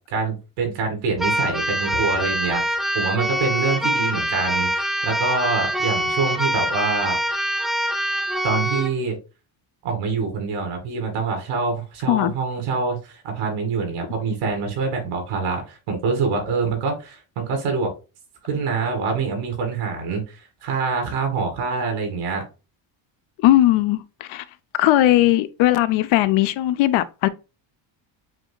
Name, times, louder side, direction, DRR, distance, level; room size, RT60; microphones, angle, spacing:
voice 1, 0.1-2.6 2.9-7.4 8.4-9.2 9.8-17.9 18.4-22.4, right 4 dB, 85° right, 2.4 m, -25 dB
Keyboard (musical), 1.2-8.9, equal, ahead, 0.6 m, -24 dB
voice 2, 23.4-24.4 24.8-27.3, left 14 dB, 70° left, 0.7 m, -18 dB
7.5 x 2.9 x 2.3 m
cardioid pair, 135°, 49 cm